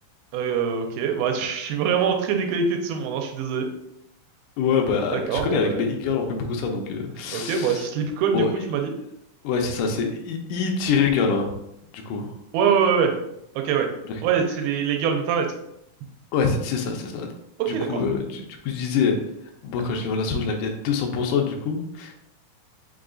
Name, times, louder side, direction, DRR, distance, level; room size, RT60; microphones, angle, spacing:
voice 1, 0.3-3.7 5.1-5.9 7.3-9.0 12.5-13.1 13.6-13.9 14.2-15.5 17.6-18.0, right 6 dB, 90° right, 4 dB, 2.6 m, -24 dB
voice 2, 4.6-7.9 8.3-8.5 9.4-11.5 11.9-12.3 16.3-17.3 17.9-19.2 19.6-22.1, left 5 dB, 85° left, 2 dB, 1.9 m, -25 dB
5.6 x 3.7 x 2.3 m, 0.79 s
omnidirectional pair, 4.3 m